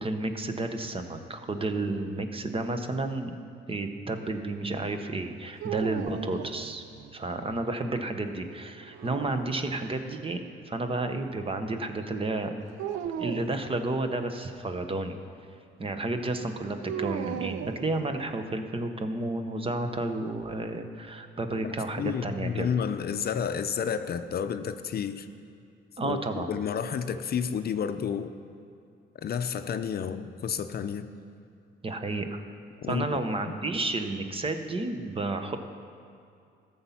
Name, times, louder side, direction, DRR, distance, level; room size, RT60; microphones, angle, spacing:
voice 1, 0.0-3.3 3.7-6.8 7.1-12.5 13.2-15.2 15.8-22.7 26.0-26.5 31.8-32.4 32.9-35.6, right 2 dB, 30° right, 7 dB, 0.9 m, -31 dB
sound 1, 5.6-7.2 8.8-9.9 12.8-13.6 16.8-18.5, right 9 dB, 85° right, 0.5 m, -36 dB
voice 2, 21.6-25.3 26.0-28.3 29.2-31.1 32.8-33.2 33.5-33.6, left 7 dB, 50° left, 9 dB, 0.6 m, -31 dB
14.0 x 7.0 x 5.8 m, 2.4 s
cardioid pair, 90°, 20 cm